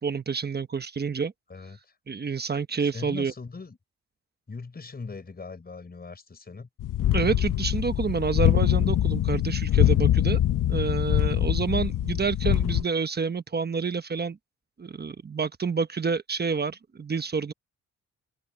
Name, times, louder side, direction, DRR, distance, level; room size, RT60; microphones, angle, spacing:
voice 1, 0.0-1.3 2.1-3.3 7.1-10.4 10.7-14.4 14.8-17.5, right 5 dB, 30° right, 1.1 m, -28 dB
voice 2, 1.5-2.0 2.8-3.8 4.5-6.7, left 4 dB, 30° left, 5.2 m, -40 dB
sound 1, 6.8-12.8, left 12 dB, 75° left, 1.0 m, -23 dB
cardioid pair, 115°, 32 cm